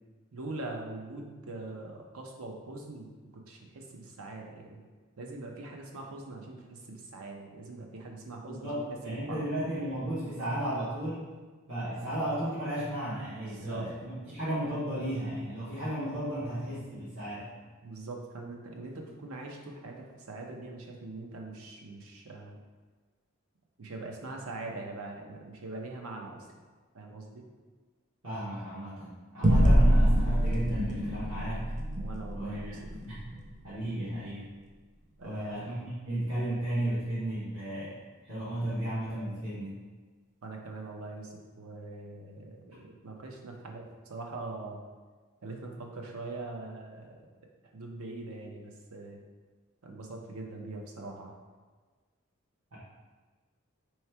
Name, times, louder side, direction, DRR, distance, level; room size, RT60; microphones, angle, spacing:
voice 1, 0.3-3.1 3.3-4.8 5.2-8.7 9.1-9.4 13.4-13.9 17.8-22.6 23.8-26.5 26.9-27.5 32.0-32.8 35.2-35.8 40.4-44.8 45.4-47.2 47.7-49.2 49.8-51.3, right 2 dB, 85° right, 1 dB, 0.7 m, -42 dB
voice 2, 8.4-11.3 11.7-17.5 28.2-31.7 32.3-33.1 33.6-34.5 35.2-39.8 52.7-52.8, right 1 dB, 70° right, -12 dB, 1.2 m, -34 dB
sound 1, 29.4-34.3, equal, 35° right, 0.6 m, -26 dB
3.2 x 3.1 x 4.5 m, 1.4 s
head